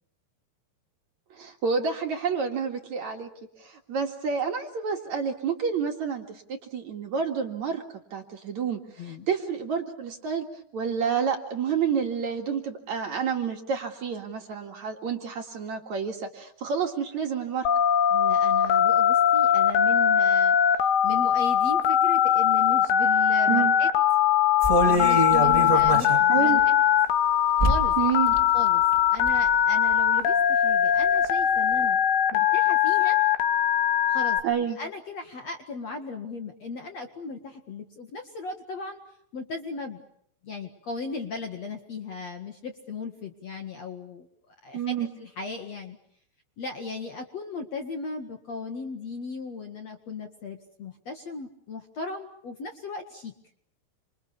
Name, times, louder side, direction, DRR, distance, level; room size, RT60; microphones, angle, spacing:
voice 1, 1.3-3.3 3.6-7.8 8.1-10.5 10.7-17.7 23.5-23.7 26.3-26.6 28.0-28.4 34.4-34.8 44.7-45.1, right 6 dB, 50° right, 3 dB, 2.9 m, -29 dB
Telephone, 17.7-34.4, left 9 dB, 80° left, 3.7 m, -21 dB
voice 2, 18.1-23.9 24.8-26.7 27.6-27.9 28.5-28.8 29.1-32.0 32.3-33.2 34.1-34.4 34.8-39.0 39.3-40.0 40.4-46.0 46.6-53.3, left 4 dB, 50° left, 5 dB, 2.3 m, -37 dB
sound 1, 24.6-26.2 26.6-26.7 27.6-28.0 28.3-28.4 28.9-29.5 29.9-30.0, right 2 dB, 15° right, 1.1 m, -24 dB
29.0 x 26.5 x 7.1 m, 0.69 s
omnidirectional pair, 5.0 m